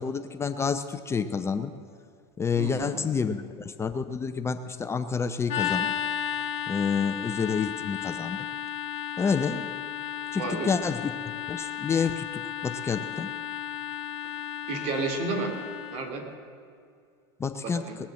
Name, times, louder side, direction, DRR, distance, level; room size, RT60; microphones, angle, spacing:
voice 1, 0.0-1.7 2.4-5.9 6.7-8.4 9.2-9.7 10.3-11.1 11.5-13.3 17.4-17.8, left 5 dB, 20° left, 10 dB, 0.6 m, -29 dB
voice 2, 2.6-3.0 10.4-10.7 14.7-15.5 15.9-16.2 17.6-18.0, right 3 dB, 55° right, 4 dB, 2.6 m, -31 dB
sound 1, 5.5-16.1, left 9 dB, 50° left, 1.7 m, -34 dB
20.0 x 7.3 x 7.5 m, 2.4 s
supercardioid pair, 115°, 13 cm